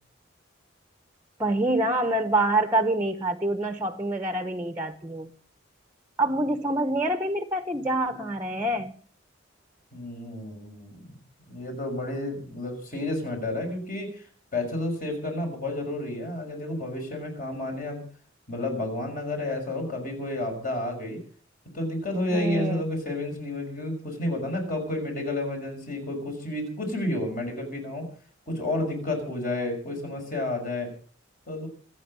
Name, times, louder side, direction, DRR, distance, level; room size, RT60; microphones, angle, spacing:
voice 1, 1.4-5.3 6.2-8.9 22.3-22.8, right 1 dB, 15° right, 9 dB, 1.0 m, -26 dB
voice 2, 9.9-11.1 11.5-14.3 14.5-18.0 18.5-21.2 21.7-28.1 28.5-30.9 31.5-31.7, left 1 dB, 45° left, 3 dB, 5.9 m, -31 dB
26.5 x 8.8 x 5.4 m, 0.44 s
head